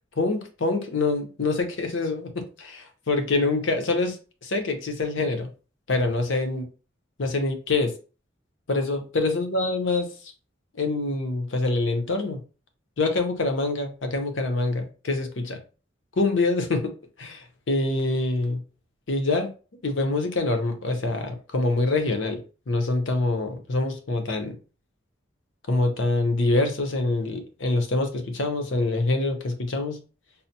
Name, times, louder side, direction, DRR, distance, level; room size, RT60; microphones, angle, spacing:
voice 1, 0.2-4.2 4.4-5.5 5.9-6.6 7.2-7.9 8.7-10.1 10.8-12.4 13.0-15.6 16.2-16.9 17.2-18.6 19.1-19.5 19.8-22.4 22.7-24.5 25.7-30.0, left 2 dB, 75° left, 0.7 m, -25 dB
5.5 x 2.0 x 2.8 m
head